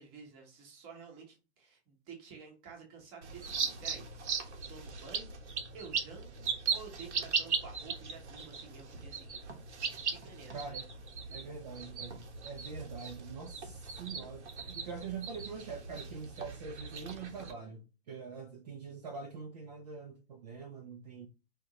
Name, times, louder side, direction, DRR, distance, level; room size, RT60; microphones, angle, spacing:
voice 1, 0.0-5.3 5.7-9.5 9.8-10.8 11.3-11.4, right 5 dB, 15° right, 1.1 m, -51 dB
Chicks Peep, 3.2-17.5, right 5 dB, 85° right, 1.4 m, -38 dB
voice 2, 10.5-10.9 11.3-21.3, right 5 dB, 35° right, 0.7 m, -44 dB
5.1 x 3.4 x 2.9 m
hypercardioid pair, 170°, 34 cm